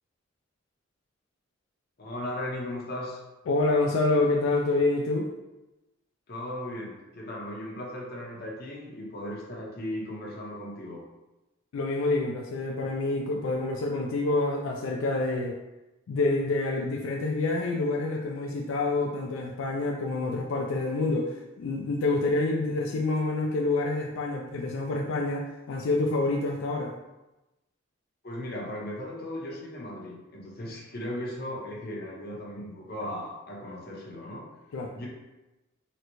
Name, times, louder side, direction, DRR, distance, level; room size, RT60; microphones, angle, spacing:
voice 1, 2.0-3.2 6.3-11.0 28.2-34.5 34.9-35.1, left 1 dB, 55° left, -3 dB, 0.8 m, -37 dB
voice 2, 3.5-5.3 11.7-15.6 16.1-26.9 34.7-34.9, left 2 dB, 90° left, 1 dB, 0.3 m, -27 dB
3.9 x 2.1 x 2.9 m, 1.0 s
head